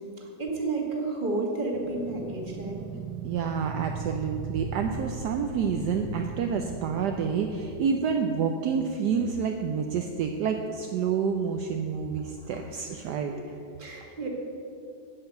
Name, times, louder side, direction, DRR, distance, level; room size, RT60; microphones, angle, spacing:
voice 1, 0.2-2.8 12.2-12.9 13.3-13.4 13.8-14.3, right 2 dB, 30° right, -1 dB, 1.8 m, -32 dB
sound 1, 1.7-7.6, right 6 dB, 90° right, 1.5 m, -38 dB
voice 2, 3.2-13.3, right 6 dB, 70° right, 4 dB, 1.2 m, -28 dB
8.8 x 7.8 x 8.0 m, 2.5 s
omnidirectional pair, 1.9 m